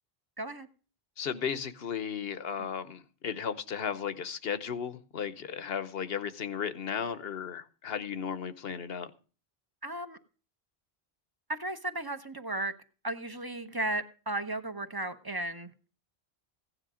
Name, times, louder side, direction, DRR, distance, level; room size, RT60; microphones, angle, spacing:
voice 1, 0.4-0.7 9.8-10.2 11.5-12.7 13.0-15.9, right 2 dB, 25° right, 0.8 m, -35 dB
voice 2, 1.2-9.1, left 7 dB, 70° left, 1.1 m, -35 dB
16.0 x 9.9 x 5.0 m
omnidirectional pair, 1.0 m